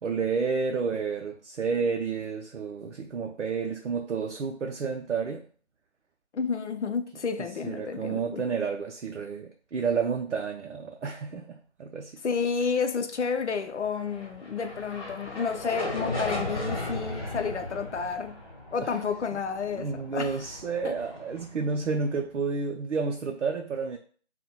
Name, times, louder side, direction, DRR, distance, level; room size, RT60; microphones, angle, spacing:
voice 1, 0.0-5.4 7.4-12.2 18.8-19.0 19.3-19.4 19.7-24.0, right 5 dB, 85° right, 0.5 m, -30 dB
voice 2, 6.3-8.4 12.2-18.4 18.7-20.4 20.8-21.0, left 5 dB, 80° left, 0.5 m, -30 dB
sound 1, 13.8-22.2, left 1 dB, 30° left, 1.0 m, -37 dB
4.1 x 2.1 x 2.2 m
figure-of-eight pair, 160°, 35 cm